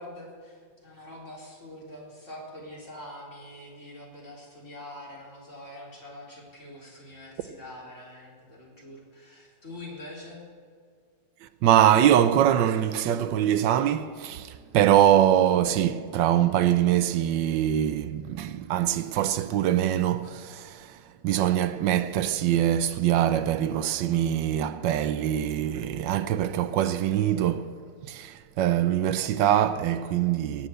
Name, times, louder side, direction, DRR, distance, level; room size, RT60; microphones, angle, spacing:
voice 1, 0.0-10.4, left 1 dB, 40° left, 4.0 m, -44 dB
voice 2, 11.6-27.8 28.1-30.7, right 11 dB, 80° right, 1.3 m, -23 dB
17.5 x 7.8 x 7.8 m
omnidirectional pair, 2.0 m